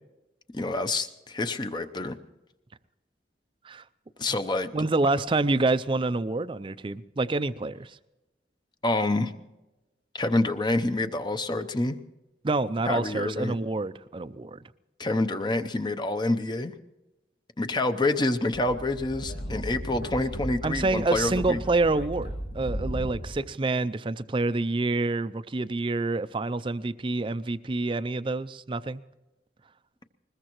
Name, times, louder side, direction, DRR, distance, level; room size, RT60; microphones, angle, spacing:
voice 1, 0.5-2.2 4.2-4.7 8.8-9.3 10.1-12.0 12.9-13.6 15.0-16.7 17.6-21.6, left 2 dB, 25° left, 8 dB, 0.7 m, -27 dB
voice 2, 4.7-7.9 12.4-14.6 20.6-29.0, right 3 dB, 30° right, 15 dB, 0.4 m, -27 dB
Speech / Wind, 18.5-23.4, equal, 75° left, 2.7 m, -36 dB
21.0 x 21.0 x 3.0 m, 1.0 s
head